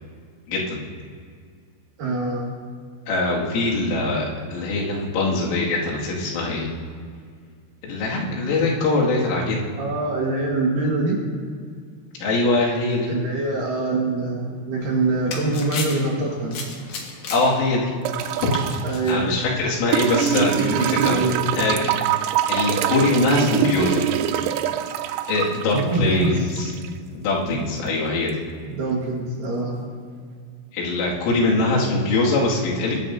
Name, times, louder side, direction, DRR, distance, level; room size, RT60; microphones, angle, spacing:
voice 1, 0.5-0.8 3.1-6.7 7.8-9.6 12.2-13.1 17.3-17.9 18.4-18.6 19.1-21.3 21.6-21.8 22.5-24.0 25.3-26.7 27.1-28.4 30.7-33.0, left 2 dB, 85° left, -4 dB, 4.8 m, -22 dB
voice 2, 2.0-2.5 9.8-11.2 13.1-16.6 18.8-19.4 20.5-21.5 25.7-26.5 28.7-29.9, right 3 dB, 60° right, -3 dB, 2.5 m, -24 dB
sound 1, 14.8-20.0, left 4 dB, 60° left, 2.0 m, -36 dB
sound 2, 18.1-18.9 19.9-26.9 28.3-28.4, right 10 dB, 80° right, 2.7 m, -24 dB
22.0 x 11.0 x 2.7 m, 2.1 s
omnidirectional pair, 5.6 m